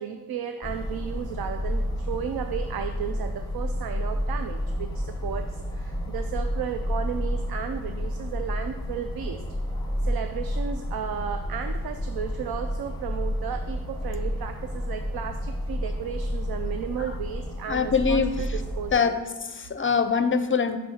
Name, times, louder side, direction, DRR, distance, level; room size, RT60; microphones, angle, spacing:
voice 1, 0.0-9.4 10.0-19.2, right 8 dB, 75° right, 7 dB, 0.5 m, -34 dB
sound 1, 0.6-19.0, equal, 10° left, 0.9 m, -30 dB
voice 2, 17.7-18.4 18.9-19.2 19.4-20.8, left 5 dB, 35° left, 9 dB, 0.5 m, -23 dB
5.5 x 4.3 x 6.2 m, 1.2 s
wide cardioid pair, 85°, 37 cm